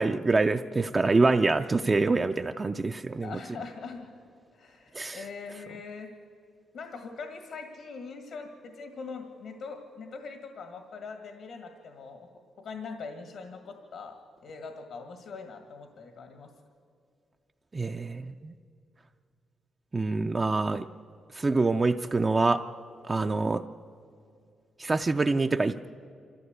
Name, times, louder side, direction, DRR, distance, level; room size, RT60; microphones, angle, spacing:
voice 1, 0.0-3.4 5.0-5.2 17.7-18.5 19.9-20.8 21.3-22.6 23.1-23.6 24.8-25.9, right 3 dB, 20° right, 5 dB, 0.4 m, -25 dB
voice 2, 3.2-4.1 4.5-6.1 6.7-12.3 12.6-16.5, left 4 dB, 75° left, 5 dB, 1.7 m, -42 dB
26.5 x 14.0 x 8.1 m, 2.4 s
cardioid pair, 145°, 0 cm